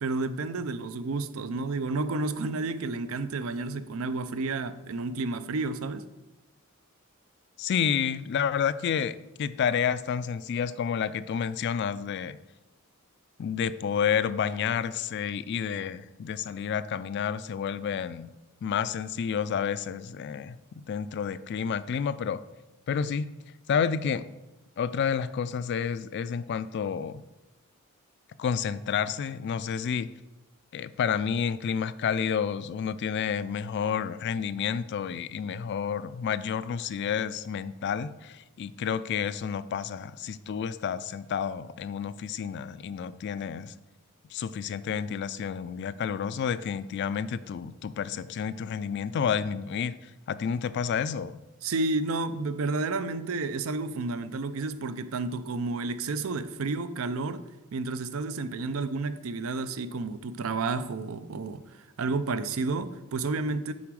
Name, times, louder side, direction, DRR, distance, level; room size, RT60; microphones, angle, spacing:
voice 1, 0.0-6.1 51.6-57.4 57.7-61.6 62.0-63.7, right 3 dB, 75° right, 12 dB, 0.5 m, -31 dB
voice 2, 7.6-12.4 13.4-18.3 18.6-22.4 22.9-23.3 23.7-24.2 24.8-27.2 28.4-30.1 30.7-43.7 44.3-49.9 50.3-51.3, left 7 dB, 55° left, 15 dB, 0.3 m, -30 dB
7.0 x 5.0 x 4.7 m, 1.0 s
head